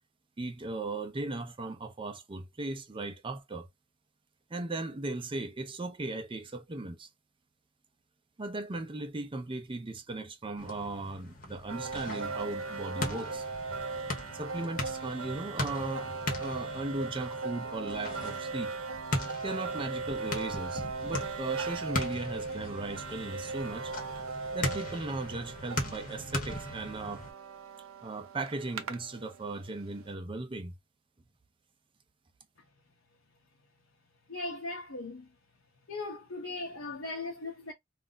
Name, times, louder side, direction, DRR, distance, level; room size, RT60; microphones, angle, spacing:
voice 1, 0.4-3.7 4.5-7.1 8.4-13.4 14.3-18.7 19.4-23.9 24.5-27.2 28.0-30.7, right 2 dB, 25° right, 0.5 m, -37 dB
sound 1, 10.6-27.3, left 2 dB, 40° left, 0.9 m, -39 dB
sound 2, 11.7-29.7, right 4 dB, 75° right, 0.5 m, -38 dB
voice 2, 34.3-35.3 35.9-37.7, left 2 dB, 70° left, 0.8 m, -38 dB
2.5 x 2.0 x 3.7 m
head